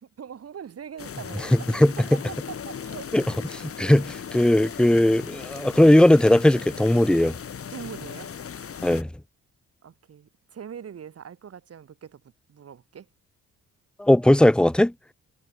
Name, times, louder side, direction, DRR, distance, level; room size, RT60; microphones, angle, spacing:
voice 1, 0.0-1.7 2.1-3.1 3.9-4.0 7.7-8.3 9.8-12.2 12.5-13.1, right 8 dB, 50° right, 4.6 m, -41 dB
sound 1, 1.0-9.0, left 7 dB, 50° left, 3.8 m, -38 dB
voice 2, 1.5-1.9 3.1-3.2 3.5-7.4 8.8-9.1 14.0-14.9, left 1 dB, 5° left, 0.9 m, -18 dB
cardioid pair, 90°, 30 cm